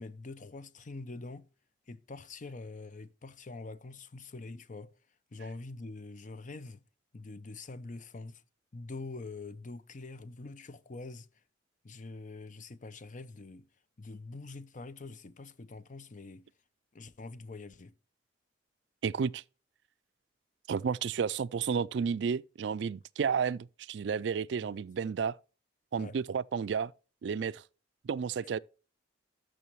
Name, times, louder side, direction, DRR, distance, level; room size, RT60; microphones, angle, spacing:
voice 1, 0.0-1.5 1.9-4.9 5.3-6.8 7.1-8.4 8.7-11.3 11.8-13.7 14.0-16.5 16.9-17.9 24.6-24.8 26.0-26.2, left 3 dB, 45° left, 0.6 m, -45 dB
voice 2, 19.0-19.4 20.7-25.3 25.9-26.9 27.2-27.6 28.0-28.6, right 6 dB, 65° right, 0.4 m, -32 dB
12.5 x 6.2 x 3.1 m
head